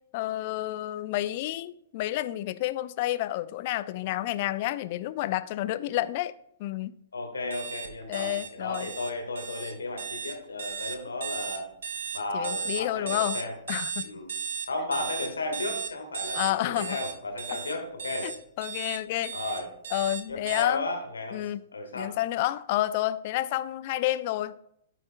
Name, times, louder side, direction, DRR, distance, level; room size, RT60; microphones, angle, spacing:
voice 1, 0.1-6.3 6.6-6.9 8.1-8.9 12.3-13.4 13.7-14.0 16.3-17.0 18.2-19.4 19.9-20.9 21.3-21.6 21.9-24.5, left 15 dB, 40° left, 0.3 m, -30 dB
voice 2, 5.6-6.0 7.1-11.7 12.1-13.6 14.0-14.3 14.7-18.3 19.3-19.7 20.3-22.2, left 2 dB, 70° left, 1.5 m, -34 dB
sound 1, 7.5-20.6, right 7 dB, 65° right, 0.6 m, -36 dB
13.5 x 5.0 x 2.2 m
figure-of-eight pair, 110°, 0 cm